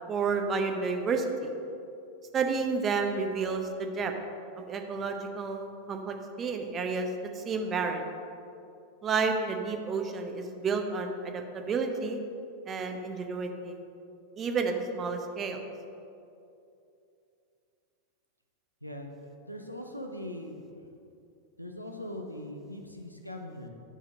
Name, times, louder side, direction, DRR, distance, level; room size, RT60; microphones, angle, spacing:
voice 1, 0.1-1.5 2.3-4.1 4.6-7.1 7.3-8.1 9.0-12.2 12.7-13.8 14.4-15.6, right 4 dB, 25° right, 5 dB, 0.7 m, -31 dB
voice 2, 18.8-20.8 21.6-23.7, left 1 dB, 90° left, 3 dB, 0.7 m, -41 dB
9.1 x 4.2 x 5.1 m, 2.7 s
figure-of-eight pair, 90°, 0 cm